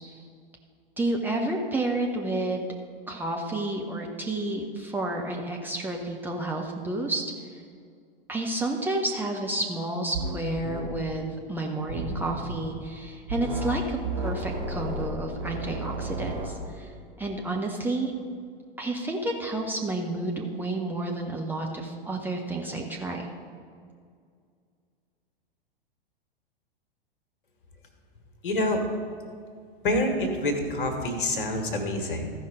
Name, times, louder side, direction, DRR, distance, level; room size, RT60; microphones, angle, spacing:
voice 1, 1.0-2.7 3.1-7.3 8.3-16.9 17.2-18.1 18.8-23.3, right 2 dB, 5° right, 0 dB, 0.6 m, -30 dB
sound 1, 10.1-10.4 10.6-10.9 11.9-12.6 13.3-13.8 14.0-16.5, right 2 dB, 55° right, 2.1 m, -32 dB
voice 2, 28.4-28.8 29.8-32.2, left 1 dB, 60° left, 5 dB, 1.6 m, -26 dB
14.0 x 5.4 x 4.9 m, 2.1 s
figure-of-eight pair, 100°, 29 cm